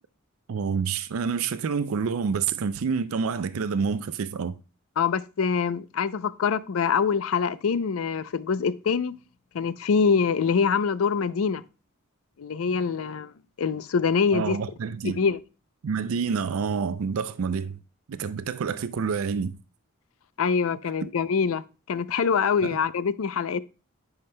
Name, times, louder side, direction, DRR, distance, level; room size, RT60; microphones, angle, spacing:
voice 1, 0.5-4.6 14.3-15.2 15.8-17.8 18.1-19.6 22.6-22.8, right 5 dB, 85° right, 0.4 m, -28 dB
voice 2, 5.0-9.1 9.5-11.6 12.4-14.6 15.0-15.4 20.4-23.6, left 6 dB, 85° left, 0.5 m, -25 dB
10.5 x 5.8 x 2.2 m
head